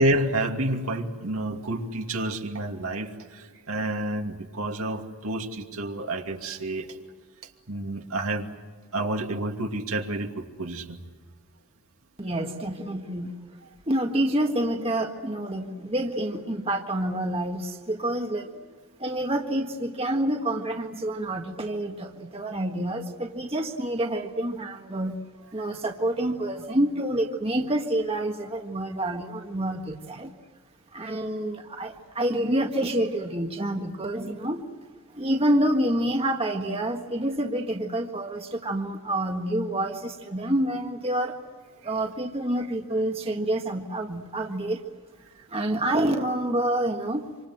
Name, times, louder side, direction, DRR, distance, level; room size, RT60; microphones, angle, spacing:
voice 1, 0.0-3.1 3.4-6.9 7.7-8.5 8.9-11.0, right 1 dB, 75° right, 2 dB, 2.6 m, -29 dB
voice 2, 12.2-13.3 13.9-18.5 19.0-25.1 25.5-30.3 30.9-34.6 35.1-41.4 41.8-44.8 45.5-47.2, right 1 dB, 25° right, 3 dB, 1.6 m, -27 dB
27.0 x 26.0 x 7.9 m, 1.4 s
head